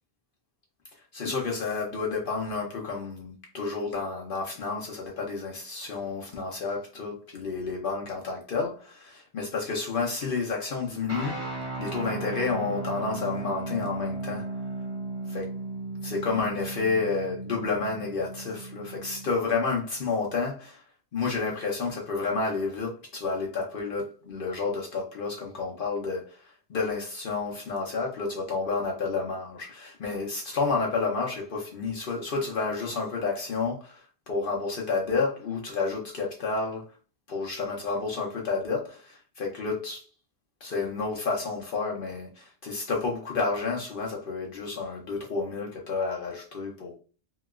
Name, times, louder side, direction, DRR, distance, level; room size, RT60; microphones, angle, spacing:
voice 1, 1.1-11.5 11.8-14.5 15.3-15.5 16.0-20.8 21.1-36.9 37.3-40.1 40.6-46.9, left 4 dB, 60° left, 0.8 m, -30 dB
sound 1, 11.1-19.3, right 2 dB, 35° right, 1.1 m, -36 dB
2.9 x 2.8 x 2.3 m
omnidirectional pair, 1.1 m